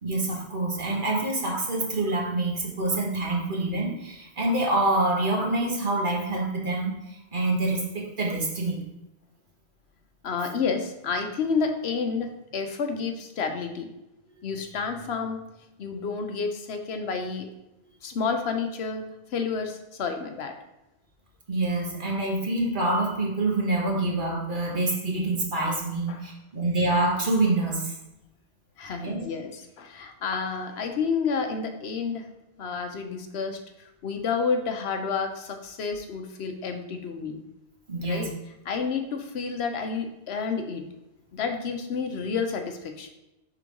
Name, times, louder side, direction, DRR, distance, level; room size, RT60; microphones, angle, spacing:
voice 1, 0.0-8.8 21.5-28.0 29.0-29.3 37.9-38.3, right 2 dB, 50° right, -1 dB, 1.4 m, -26 dB
voice 2, 10.2-13.9 14.4-15.4 15.8-17.5 18.0-20.5 26.1-26.3 28.8-32.3 32.6-37.4 38.0-38.3 38.6-40.9 41.3-43.1, left 5 dB, 75° left, 5 dB, 1.0 m, -30 dB
4.9 x 3.7 x 5.2 m, 0.93 s
omnidirectional pair, 1.1 m